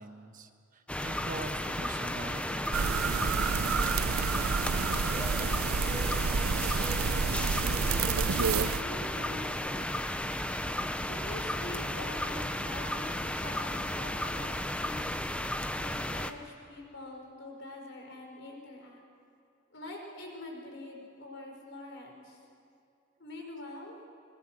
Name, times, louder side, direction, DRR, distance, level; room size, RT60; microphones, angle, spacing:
voice 1, 0.0-2.8 3.0-4.1, right 2 dB, 40° right, 7 dB, 1.3 m, -43 dB
sound 1, 0.9-16.3, left 1 dB, 5° left, 0.7 m, -34 dB
sound 2, 2.7-8.8, right 5 dB, 85° right, 0.6 m, -29 dB
voice 2, 7.8-8.2 8.6-10.2 11.0-15.3 15.8-19.0 19.7-22.4 23.2-24.0, left 2 dB, 60° left, 2 dB, 5.0 m, -45 dB
25.0 x 22.0 x 7.7 m, 2.5 s
head